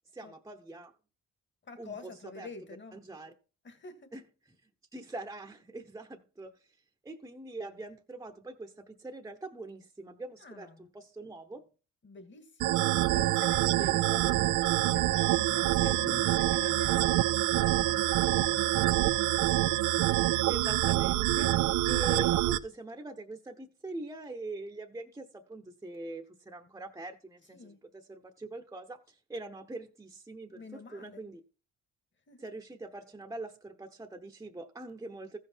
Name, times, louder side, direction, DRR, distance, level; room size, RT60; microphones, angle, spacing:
voice 1, 0.1-0.9 1.8-2.5 2.9-3.3 4.1-4.2 4.9-6.6 7.0-11.6 13.7-14.4 15.8-16.2 20.1-31.4 32.4-35.4, right 2 dB, 10° right, 1.0 m, -43 dB
voice 2, 1.7-3.0 3.6-4.1 10.4-10.9 12.0-19.3 27.5-27.8 30.5-31.2 32.3-32.4, left 3 dB, 40° left, 2.0 m, -47 dB
sound 1, 12.6-22.6, right 16 dB, 85° right, 0.5 m, -26 dB
14.5 x 5.6 x 4.5 m
cardioid pair, 90°, 30 cm